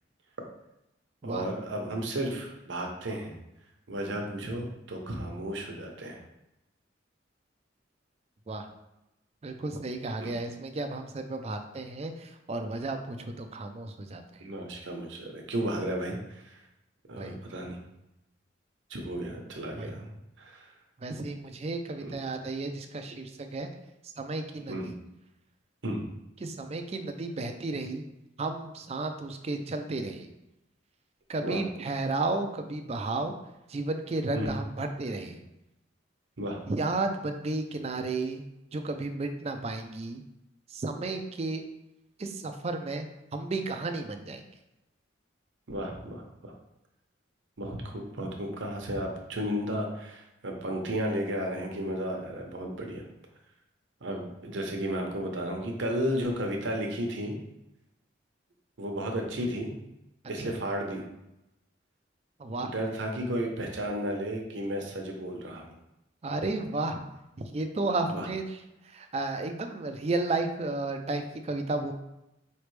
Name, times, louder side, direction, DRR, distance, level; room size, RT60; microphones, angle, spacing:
voice 1, 1.2-3.3 3.9-6.2 10.2-10.3 14.4-16.6 17.1-17.8 18.9-20.1 20.4-20.7 22.0-22.1 24.7-24.9 25.8-26.1 31.4-31.6 34.3-34.5 36.4-36.6 45.7-46.5 47.6-53.0 54.0-57.4 58.8-59.8 60.3-61.1 62.6-65.8 68.1-68.3, equal, 75° right, 1 dB, 0.9 m, -33 dB
voice 2, 9.4-14.4 17.2-17.4 19.8-20.0 21.0-23.7 24.2-24.9 26.4-28.1 28.4-30.3 31.3-33.3 33.7-35.4 36.7-38.4 38.7-40.2 40.7-41.6 42.2-43.1 43.3-44.4 60.4-60.5 62.4-62.7 66.2-67.0 67.4-68.6 68.8-71.9, right 2 dB, 35° right, 6 dB, 0.4 m, -33 dB
4.9 x 3.2 x 3.2 m, 0.90 s
head